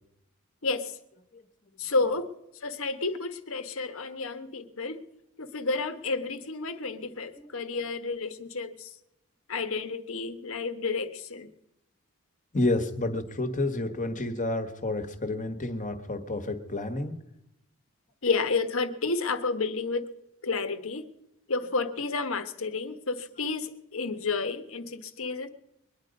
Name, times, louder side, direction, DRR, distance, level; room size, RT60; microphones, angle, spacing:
voice 1, 1.8-2.3 2.6-5.0 5.4-8.9 9.5-11.5 18.2-20.1 20.4-21.1 21.5-25.5, left 4 dB, 70° left, 9 dB, 1.2 m, -31 dB
voice 2, 12.5-17.2, left 2 dB, 35° left, 8 dB, 1.4 m, -30 dB
23.0 x 10.0 x 5.3 m, 0.88 s
head